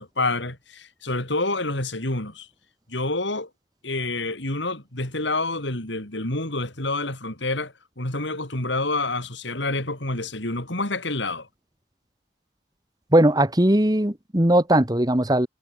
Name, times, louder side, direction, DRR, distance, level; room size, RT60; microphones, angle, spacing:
voice 1, 0.0-2.5 2.9-3.5 3.8-11.5, left 2 dB, 80° left, 5.5 m, -28 dB
voice 2, 13.1-15.5, right 1 dB, 20° right, 1.6 m, -19 dB
head